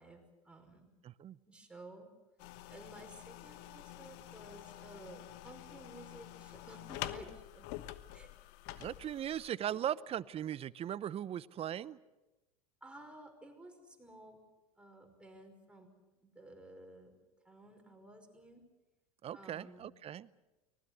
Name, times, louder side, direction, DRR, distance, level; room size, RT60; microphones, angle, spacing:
voice 1, 0.0-0.9 1.5-2.1 2.7-7.7 8.1-8.3 9.7-9.8 12.8-14.4 14.8-15.9 16.2-17.2 17.4-18.6 19.3-19.8, right 1 dB, 5° right, 3 dB, 5.5 m, -54 dB
voice 2, 1.0-1.4 8.8-12.0 19.2-20.3, right 10 dB, 35° right, 19 dB, 0.8 m, -39 dB
sound 1, 2.4-9.5, left 15 dB, 60° left, 1.2 m, -47 dB
24.5 x 19.5 x 7.9 m, 1.1 s
hypercardioid pair, 90°, 19 cm